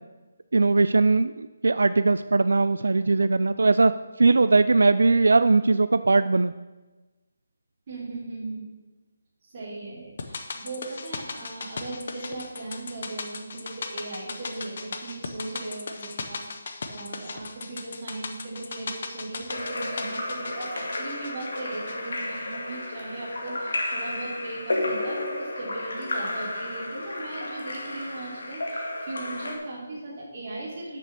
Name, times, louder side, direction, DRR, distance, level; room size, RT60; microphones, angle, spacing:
voice 1, 0.5-3.9 4.2-6.5, right 3 dB, 80° right, 12 dB, 0.3 m, -20 dB
voice 2, 7.9-8.7 9.4-16.5 16.9-31.0, right 2 dB, 25° right, -5 dB, 2.8 m, -38 dB
sound 1, 10.2-22.5 22.8-22.9, left 4 dB, 35° left, 0.7 m, -38 dB
Splash splatter / Drip / Trickle dribble, 19.5-29.6, left 1 dB, 70° left, 1.9 m, -32 dB
6.9 x 6.0 x 6.7 m, 1.2 s
hypercardioid pair, 175°, 0 cm